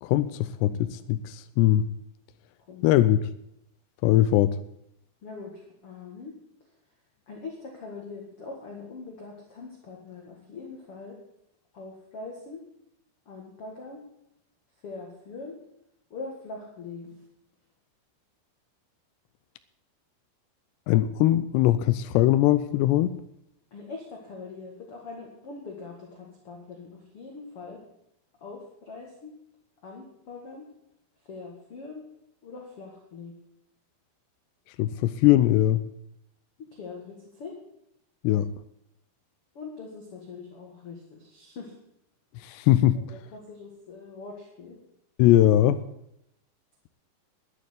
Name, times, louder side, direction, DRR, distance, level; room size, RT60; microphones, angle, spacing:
voice 1, 0.0-1.9 2.8-3.2 4.0-4.6 20.9-23.1 34.8-35.8 38.2-38.5 42.4-43.0 45.2-45.8, left 13 dB, 85° left, 2.5 m, -21 dB
voice 2, 5.2-6.3 7.3-11.2 11.7-12.6 13.3-14.0 14.8-15.6 16.1-17.2 23.7-27.8 28.4-29.3 29.8-30.6 31.3-32.0 32.4-33.3 36.7-37.6 39.5-41.8 42.9-44.8, left 4 dB, 50° left, 1.8 m, -42 dB
12.0 x 9.1 x 8.1 m
omnidirectional pair, 5.4 m